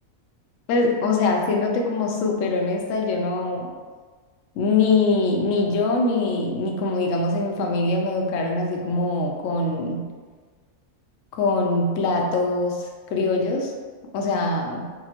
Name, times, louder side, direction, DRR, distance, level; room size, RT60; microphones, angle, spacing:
voice 1, 0.7-3.7 4.6-10.0 11.3-13.7 14.1-14.8, left 3 dB, 75° left, 1 dB, 0.9 m, -23 dB
4.9 x 2.3 x 2.9 m, 1.5 s
omnidirectional pair, 1.4 m